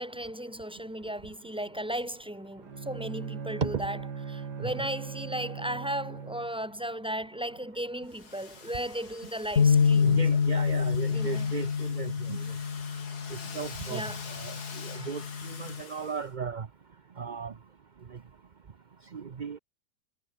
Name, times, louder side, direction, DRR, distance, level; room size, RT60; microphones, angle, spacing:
voice 1, 0.0-4.0 4.3-10.2 11.1-11.5 13.9-14.2 14.9-15.1, right 1 dB, 5° right, 2.7 m, -36 dB
Bowed string instrument, 2.6-6.7, right 6 dB, 70° right, 2.7 m, -39 dB
Domestic sounds home sounds, 8.1-16.3, left 5 dB, 65° left, 2.8 m, -47 dB
sound 1, 9.6-15.8, left 6 dB, 45° left, 1.7 m, -27 dB
voice 2, 10.0-12.5 13.5-14.0 14.3-14.5 14.8-15.2 15.6-16.7 17.2-17.5 19.1-19.6, right 6 dB, 45° right, 0.6 m, -35 dB
omnidirectional pair, 1.9 m